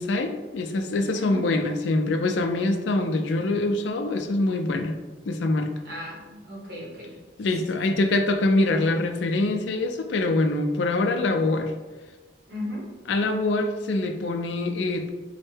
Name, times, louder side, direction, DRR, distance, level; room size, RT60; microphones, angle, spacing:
voice 1, 0.0-5.0 5.3-5.7 7.4-11.7 13.1-15.1, left 2 dB, 80° left, 6 dB, 0.4 m, -24 dB
voice 2, 1.1-1.5 5.8-7.7 12.5-12.9, left 1 dB, 60° right, -4 dB, 1.2 m, -37 dB
4.3 x 2.1 x 3.3 m, 1.3 s
head